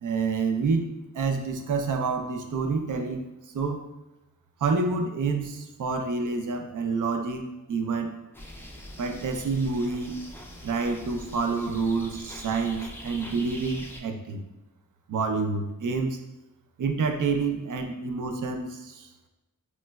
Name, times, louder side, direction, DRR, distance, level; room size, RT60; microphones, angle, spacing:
voice 1, 0.0-3.3 3.5-3.9 4.6-8.1 9.0-10.2 10.6-14.4 15.1-16.2 16.8-19.1, right 4 dB, 60° right, 5 dB, 0.5 m, -28 dB
sound 1, 8.3-14.0, left 1 dB, 5° left, 0.4 m, -43 dB
3.1 x 3.0 x 2.2 m, 1.0 s
cardioid pair, 60°, 35 cm